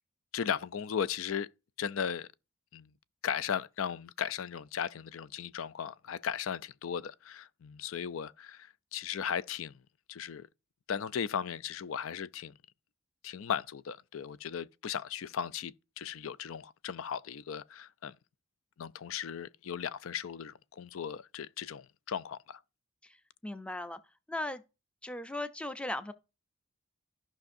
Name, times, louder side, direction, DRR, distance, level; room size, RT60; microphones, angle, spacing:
voice 1, 0.3-1.5 1.8-2.3 2.7-2.9 3.2-9.8 10.1-10.5 10.9-12.5 13.2-18.2 18.8-22.6, left 8 dB, 75° left, 0.4 m, -37 dB
voice 2, 23.4-24.0 24.3-24.6 25.0-26.1, left 1 dB, 5° left, 0.5 m, -37 dB
14.5 x 5.8 x 2.6 m
head